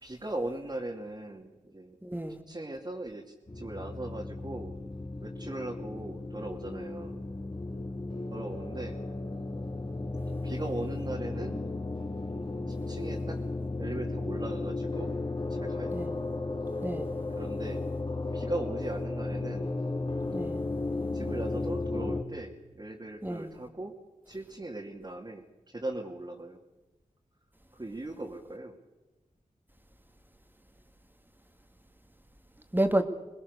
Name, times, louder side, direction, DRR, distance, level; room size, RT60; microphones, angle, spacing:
voice 1, 0.0-2.0 2.5-4.8 5.2-7.2 8.3-9.0 10.4-11.6 12.7-13.4 13.8-15.1 15.5-16.0 17.3-17.8 18.3-19.7 21.1-23.9 24.3-26.6 27.7-28.7, right 2 dB, 30° right, -1 dB, 2.7 m, -39 dB
voice 2, 2.0-2.4 15.9-16.2 16.8-17.1 20.3-20.6 23.2-23.5 32.7-33.0, right 1 dB, 15° right, 7 dB, 2.2 m, -30 dB
sound 1, 3.5-22.2, left 2 dB, 35° left, 3.2 m, -34 dB
22.5 x 20.5 x 6.9 m, 1.1 s
cardioid pair, 45°, 14 cm